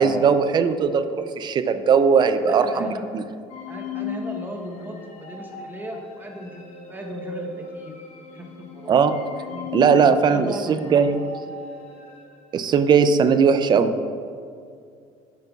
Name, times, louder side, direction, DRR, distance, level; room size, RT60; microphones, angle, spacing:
voice 1, 0.0-2.9 3.1-3.2 8.9-9.1 9.7-11.2 12.5-13.9, right 6 dB, 35° right, 11 dB, 0.4 m, -18 dB
voice 2, 2.5-3.1 3.7-6.6 6.9-7.9 8.3-9.7 10.3-11.3, equal, 15° right, 2 dB, 0.9 m, -37 dB
sound 1, 3.5-12.5, left 5 dB, 60° left, 0.7 m, -37 dB
9.0 x 5.4 x 2.3 m, 2.3 s
cardioid pair, 120°, 13 cm